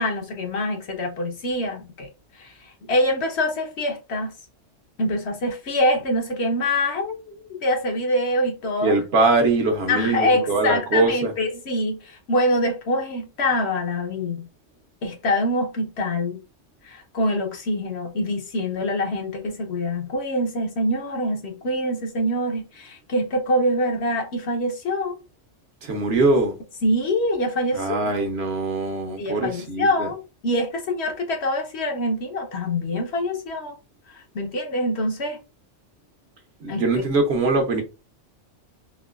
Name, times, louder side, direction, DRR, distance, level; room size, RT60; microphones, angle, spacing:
voice 1, 0.0-2.1 2.4-2.5 2.9-4.3 5.0-8.9 9.9-14.5 15.0-16.4 16.8-25.2 26.8-28.2 29.2-33.8 34.1-35.4 36.7-37.0, left 1 dB, 65° left, 1.1 m, -25 dB
voice 2, 8.8-11.3 25.8-26.5 27.7-30.1 36.6-37.8, right 3 dB, 60° right, 1.0 m, -22 dB
3.7 x 2.6 x 2.4 m
omnidirectional pair, 1.2 m